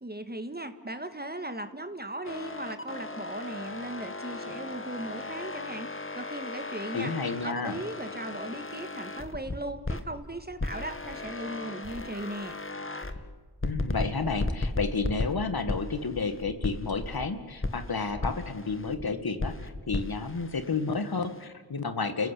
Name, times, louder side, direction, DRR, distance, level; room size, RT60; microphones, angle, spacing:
voice 1, 0.0-7.1 7.4-12.6, right 1 dB, 20° right, 9 dB, 1.9 m, -38 dB
sound 1, 2.2-10.1 10.6-13.2 13.6-17.3 17.6-19.0 19.4-21.5, left 2 dB, 25° left, 1.9 m, -36 dB
voice 2, 6.9-7.8 13.6-22.3, left 4 dB, 50° left, 10 dB, 1.9 m, -31 dB
29.0 x 15.5 x 8.4 m, 1.4 s
cardioid pair, 40°, 47 cm